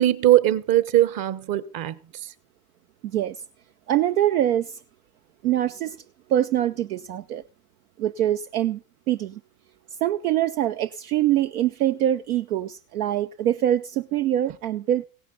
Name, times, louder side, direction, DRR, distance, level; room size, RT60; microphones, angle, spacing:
voice 1, 0.0-2.3, right 14 dB, 50° right, 1.3 m, -21 dB
voice 2, 3.0-3.4 3.9-4.8 5.4-6.0 6.3-7.4 8.0-8.8 9.1-9.4 10.0-15.0, right 12 dB, 80° right, 0.6 m, -24 dB
17.0 x 10.5 x 3.9 m
hypercardioid pair, 65°, 44 cm